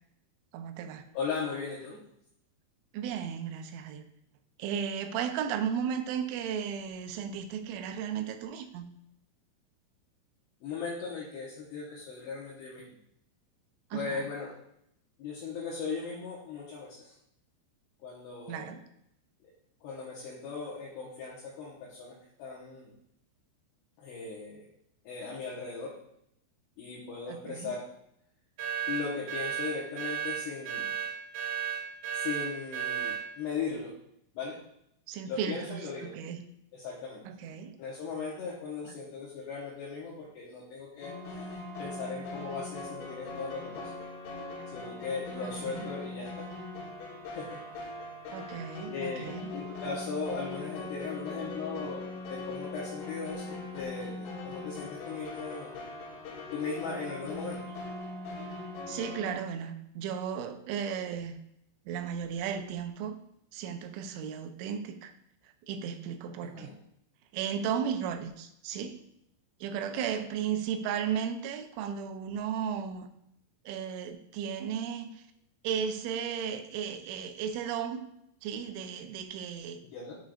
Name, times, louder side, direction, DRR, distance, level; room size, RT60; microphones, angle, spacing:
voice 1, 0.5-1.0 2.9-4.1 4.6-8.9 13.9-14.3 18.5-18.8 27.3-27.7 35.1-36.4 37.3-37.8 38.9-39.0 45.4-45.9 48.3-49.5 58.9-61.4 61.9-63.2 63.5-65.1 65.7-66.7 67.3-69.0 69.6-73.1 73.7-75.2 75.6-78.1 78.4-79.8, right 8 dB, 80° right, 7 dB, 3.0 m, -35 dB
voice 2, 1.1-2.0 10.6-12.8 13.9-14.5 15.2-17.1 18.0-18.7 19.8-22.9 24.0-24.6 25.0-25.9 26.8-27.9 28.9-30.9 32.1-33.9 34.3-34.6 35.3-36.1 36.7-37.2 37.8-41.1 41.8-43.9 44.7-46.5 47.3-47.5 48.9-49.2 49.5-55.8 56.5-57.7 66.4-66.7 69.9-70.0 79.9-80.1, left 5 dB, 70° left, -5 dB, 2.9 m, -38 dB
sound 1, 28.6-33.2, right 10 dB, 65° right, 2.4 m, -33 dB
sound 2, 41.0-59.4, left 2 dB, 90° left, 4.0 m, -41 dB
9.1 x 6.4 x 2.5 m, 0.76 s
omnidirectional pair, 5.7 m